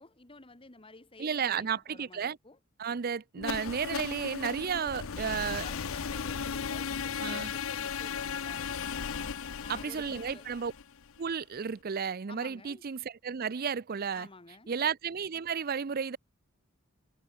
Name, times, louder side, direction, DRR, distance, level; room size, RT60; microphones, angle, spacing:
voice 1, 0.0-2.6 5.6-8.8 9.6-10.5 12.3-12.8 14.1-14.7, left 3 dB, 25° left, 1.7 m, -51 dB
voice 2, 1.2-2.4 2.8-5.6 7.2-7.5 9.7-10.7 11.2-14.3 14.7-16.2, right 6 dB, 45° right, 0.5 m, -33 dB
sound 1, 3.4-11.3, left 6 dB, 75° left, 0.7 m, -36 dB
head